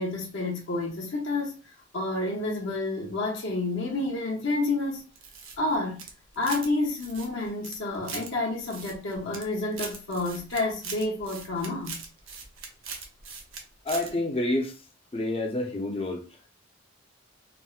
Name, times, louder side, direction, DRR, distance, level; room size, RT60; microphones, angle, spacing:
voice 1, 0.0-1.5 1.9-5.0 5.6-6.0 6.4-12.0, left 2 dB, 65° left, 0.7 m, -29 dB
sound 1, 5.1-6.7 7.0-8.3 8.7-9.4 9.7-13.6 13.9-14.1, right 5 dB, 85° right, 0.7 m, -40 dB
voice 2, 13.9-14.7 15.1-16.2, left 1 dB, 30° left, 0.5 m, -28 dB
4.1 x 2.1 x 2.3 m
head